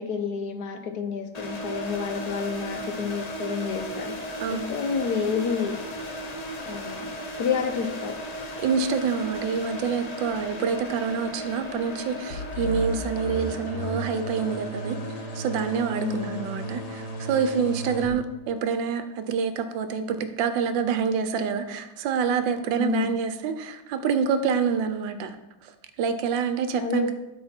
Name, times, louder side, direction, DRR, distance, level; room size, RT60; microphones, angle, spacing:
voice 1, 0.0-4.2 4.5-5.8 6.7-7.1 7.4-8.2 16.0-16.5 18.1-18.2 22.8-23.1 26.8-27.1, left 6 dB, 65° left, 6 dB, 1.1 m, -29 dB
sound 1, 1.3-18.2, equal, 45° left, 0.5 m, -37 dB
voice 2, 8.6-15.0 15.3-25.3 25.6-25.7 26.0-27.1, right 6 dB, 80° right, 9 dB, 1.4 m, -27 dB
sound 2, 12.3-18.1, equal, 85° left, 2.1 m, -34 dB
12.5 x 4.2 x 4.3 m, 0.97 s
omnidirectional pair, 2.0 m